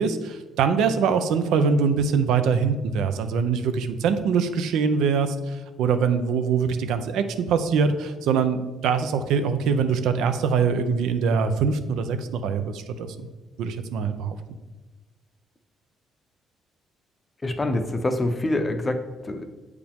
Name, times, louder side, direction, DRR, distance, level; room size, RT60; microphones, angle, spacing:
voice 1, 0.0-13.3 13.6-14.4, right 6 dB, 80° right, 9 dB, 0.5 m, -23 dB
voice 2, 17.4-19.5, left 1 dB, 20° left, 7 dB, 0.6 m, -26 dB
7.8 x 4.9 x 3.5 m, 1.2 s
cardioid pair, 135°, 0 cm